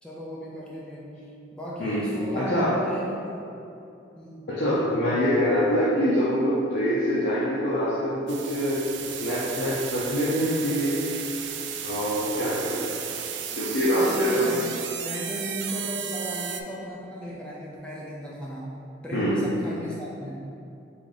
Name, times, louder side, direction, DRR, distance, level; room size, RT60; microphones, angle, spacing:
voice 1, 0.0-3.3 4.2-4.5 14.0-14.7 15.0-18.8 19.0-20.4, equal, 5° left, -6 dB, 0.4 m, -35 dB
voice 2, 2.4-2.7 4.5-11.0 11.8-13.0 13.6-14.5 19.1-19.4, equal, 70° left, -8 dB, 0.7 m, -25 dB
sound 1, 8.3-16.6, right 8 dB, 75° right, 0.3 m, -34 dB
3.7 x 3.5 x 3.9 m, 2.7 s
head